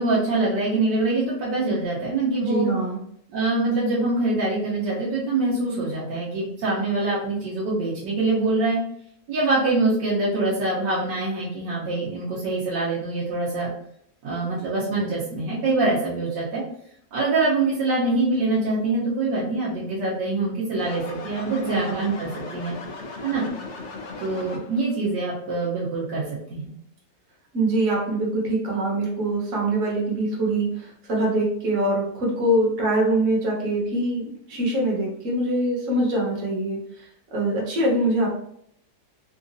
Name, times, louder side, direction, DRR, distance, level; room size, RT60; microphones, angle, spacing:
voice 1, 0.0-2.7 3.3-8.8 9.3-13.7 14.2-16.6 17.1-22.8 23.2-23.5 24.2-26.2 26.5-26.7, right 2 dB, 70° right, -8 dB, 1.4 m, -24 dB
voice 2, 2.5-3.0 21.4-22.1 27.5-38.3, right 1 dB, 50° right, -3 dB, 1.3 m, -24 dB
sound 1, 20.8-24.9, left 3 dB, 75° left, 0.6 m, -37 dB
3.9 x 2.4 x 2.5 m, 0.68 s
omnidirectional pair, 1.9 m